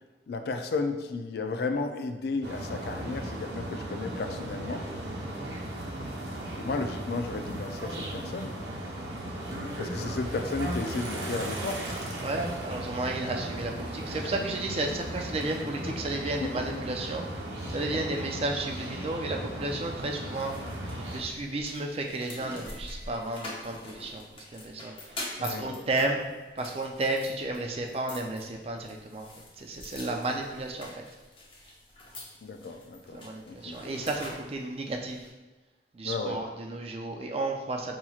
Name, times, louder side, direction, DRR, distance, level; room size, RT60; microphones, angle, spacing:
voice 1, 0.3-4.8 6.6-8.6 9.8-12.0 14.1-14.3 15.8-16.0 16.4-17.0 17.7-18.0 19.4-19.5 25.4-25.9 32.4-33.8 36.0-36.4, left 3 dB, 65° left, 6 dB, 0.3 m, -34 dB
sound 1, 2.4-21.2, right 1 dB, 75° right, 0.8 m, -36 dB
voice 2, 5.2-5.5 12.2-20.6 21.1-26.2 26.6-29.3 29.6-31.0 33.1-35.3 35.9-38.0, right 2 dB, 35° right, 2 dB, 0.4 m, -33 dB
sound 2, 20.3-35.3, left 1 dB, 30° left, 0.7 m, -45 dB
5.6 x 2.9 x 2.4 m, 1.3 s
head